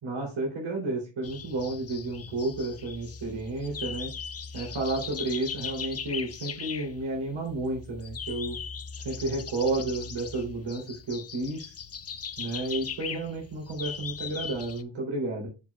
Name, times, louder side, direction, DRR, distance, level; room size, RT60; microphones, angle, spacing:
voice 1, 0.0-4.1 4.5-8.6 9.0-11.7 12.4-15.5, right 2 dB, 90° right, -1 dB, 3.4 m, -31 dB
sound 1, 1.2-14.8, left 6 dB, 35° left, 0.5 m, -39 dB
7.3 x 7.2 x 2.4 m, 0.29 s
wide cardioid pair, 125°, 46 cm